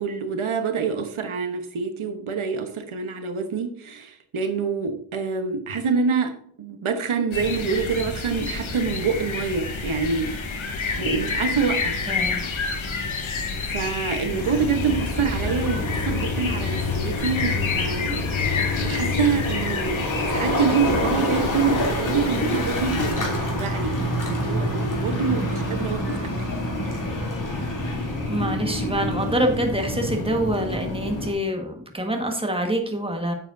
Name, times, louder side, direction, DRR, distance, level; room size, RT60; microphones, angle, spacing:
voice 1, 0.0-6.3 6.6-10.7 11.0-12.0 13.7-26.5, right 5 dB, 80° right, 7 dB, 1.2 m, -26 dB
sound 1, 7.3-23.1, left 4 dB, 75° left, 1.5 m, -29 dB
voice 2, 12.1-12.4 28.3-33.3, right 1 dB, 10° right, 3 dB, 1.6 m, -26 dB
sound 2, 14.4-31.3, left 1 dB, 40° left, 3.2 m, -27 dB
9.5 x 7.5 x 2.7 m, 0.66 s
wide cardioid pair, 120°, 48 cm